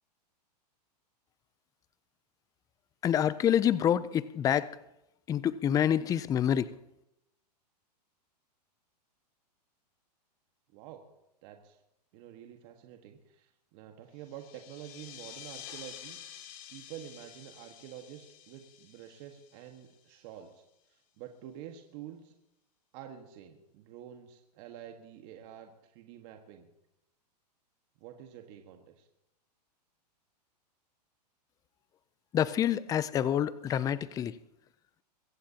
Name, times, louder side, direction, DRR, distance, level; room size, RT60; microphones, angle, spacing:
voice 1, 3.0-4.7 5.3-6.7 32.3-34.3, left 10 dB, 15° left, 17 dB, 0.4 m, -27 dB
voice 2, 10.7-11.0 11.4-11.8 12.1-16.2 16.7-20.6 20.9-22.3 22.9-26.7 28.0-29.1, right 10 dB, 45° right, 4 dB, 1.6 m, -48 dB
sound 1, 14.2-20.3, left 10 dB, 55° left, 2.5 m, -49 dB
22.5 x 16.0 x 2.9 m, 0.86 s
hypercardioid pair, 130°, 21 cm